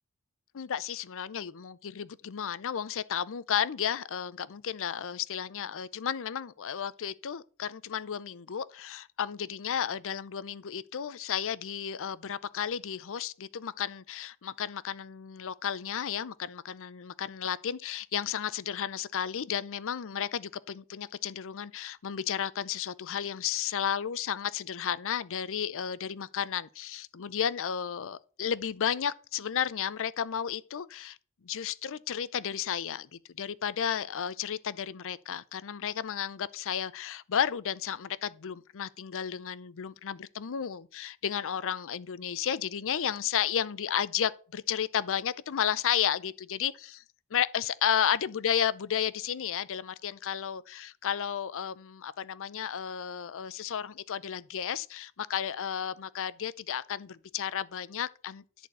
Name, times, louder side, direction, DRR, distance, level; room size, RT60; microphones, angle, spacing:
voice 1, 0.5-31.2 31.4-47.0 47.3-58.4, left 8 dB, 60° left, 0.5 m, -33 dB
11.0 x 4.4 x 7.9 m
head